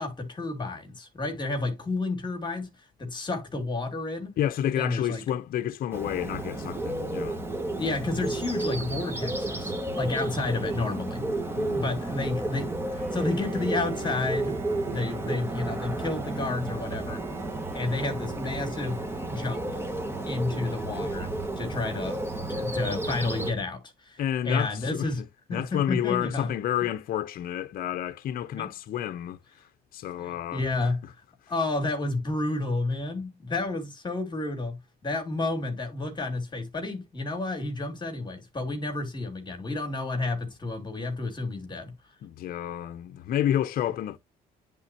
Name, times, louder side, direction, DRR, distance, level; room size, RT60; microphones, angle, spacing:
voice 1, 0.0-2.7 3.0-4.4 4.8-5.2 7.7-11.2 11.7-14.6 14.9-17.2 17.7-19.6 20.3-25.2 25.5-26.5 28.6-28.7 30.2-31.0 31.5-34.8 35.0-41.9, left 3 dB, 25° left, 2.6 m, -31 dB
voice 2, 4.4-7.4 11.6-11.9 24.2-29.4 29.9-30.9 42.2-44.2, left 11 dB, 60° left, 0.7 m, -30 dB
Bird, 5.9-23.5, right 2 dB, 15° right, 1.7 m, -32 dB
Bowed string instrument, 13.0-19.7, right 5 dB, 60° right, 1.6 m, -41 dB
10.5 x 3.8 x 2.9 m
cardioid pair, 110°, 17 cm